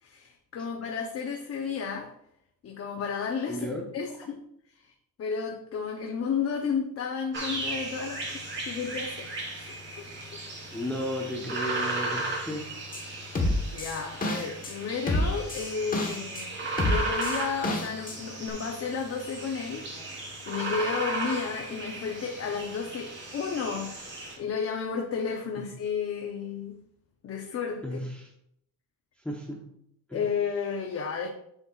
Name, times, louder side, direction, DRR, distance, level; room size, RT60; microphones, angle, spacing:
voice 1, 0.0-2.1 2.6-3.7 3.9-4.4 4.8-4.9 5.2-10.4 13.1-13.4 13.7-16.5 16.8-19.9 20.2-24.0 24.4-26.8 27.2-28.0 30.1-31.3, left 6 dB, 45° left, 3 dB, 0.8 m, -32 dB
voice 2, 3.4-3.9 10.7-12.8 25.6-25.7 27.8-28.3 29.2-29.7 30.1-30.3, equal, 5° left, -2 dB, 0.9 m, -34 dB
sound 1, 7.3-24.4, right 2 dB, 35° right, 3.2 m, -36 dB
sound 2, 12.9-13.0 13.4-14.7 15.1-16.5 16.8-18.2 18.5-18.6, left 1 dB, 25° left, 1.3 m, -28 dB
10.0 x 7.2 x 2.4 m, 0.74 s
cardioid pair, 155°, 33 cm